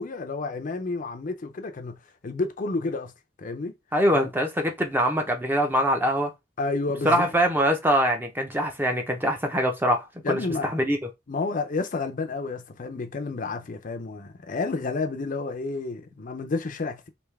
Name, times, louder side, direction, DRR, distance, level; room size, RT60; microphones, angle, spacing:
voice 1, 0.0-2.0 2.2-3.1 3.4-3.8 4.1-4.3 6.6-7.3 10.2-10.8 11.3-17.1, left 3 dB, 45° left, 0.5 m, -30 dB
voice 2, 3.9-6.3 7.0-10.4 10.7-11.0, equal, 10° right, 0.6 m, -23 dB
3.5 x 2.7 x 3.2 m
head